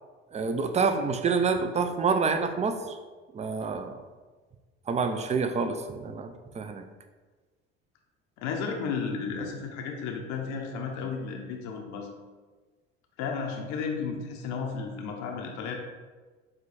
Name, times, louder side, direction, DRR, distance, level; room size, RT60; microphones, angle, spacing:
voice 1, 0.3-3.0 3.3-4.0 4.9-6.9, right 5 dB, 25° right, 8 dB, 0.4 m, -27 dB
voice 2, 8.4-12.1 13.2-15.7, left 5 dB, 70° left, 2 dB, 0.7 m, -33 dB
4.9 x 2.2 x 4.1 m, 1.3 s
supercardioid pair, 75°, 30 cm